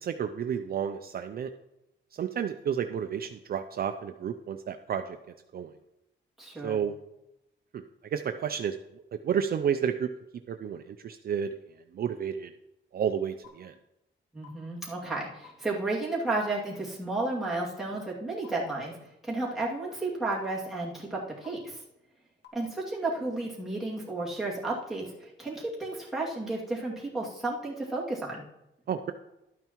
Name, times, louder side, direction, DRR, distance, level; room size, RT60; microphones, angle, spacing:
voice 1, 0.0-1.5 2.1-5.2 5.5-5.7 6.6-6.9 7.7-7.8 8.1-8.8 9.2-10.1 10.5-11.6 11.9-12.5 12.9-13.7 28.9-29.1, right 8 dB, 50° right, 7 dB, 0.4 m, -31 dB
voice 2, 6.4-6.8 14.3-21.8 22.5-28.4, right 2 dB, ahead, -7 dB, 2.4 m, -33 dB
sound 1, 13.4-13.5 14.4-14.5 15.4-15.5 16.4-16.5 17.4-17.5 18.4-18.5 19.4-19.5 20.4-20.5 21.4-21.5 22.4-22.5, left 11 dB, 60° left, 1.7 m, -49 dB
12.0 x 9.0 x 3.0 m, 0.90 s
wide cardioid pair, 160°, 20 cm